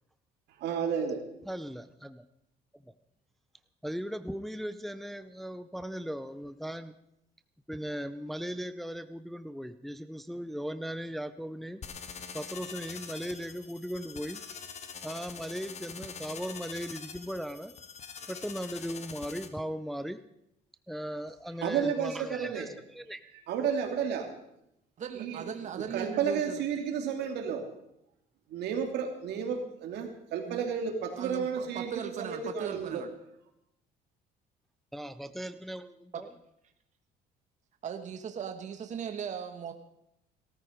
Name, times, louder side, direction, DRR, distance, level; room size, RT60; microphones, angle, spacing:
voice 1, 0.6-1.2 21.6-22.7 23.5-24.3 25.2-25.4 25.8-27.6 28.5-33.0, right 7 dB, 75° right, 4 dB, 2.7 m, -32 dB
voice 2, 1.5-2.2 2.9-3.0 3.8-6.9 7.7-11.8 12.3-14.4 15.0-17.7 18.3-20.2 20.9-23.2 34.9-36.3, equal, ahead, 11 dB, 0.6 m, -38 dB
sound 1, 11.8-19.5, left 6 dB, 40° left, 1.4 m, -44 dB
voice 3, 25.0-26.6 30.5-30.7 31.1-33.1 36.1-36.2 37.8-39.7, right 7 dB, 45° right, 6 dB, 1.3 m, -38 dB
17.5 x 13.5 x 5.2 m, 0.80 s
cardioid pair, 110°, 17 cm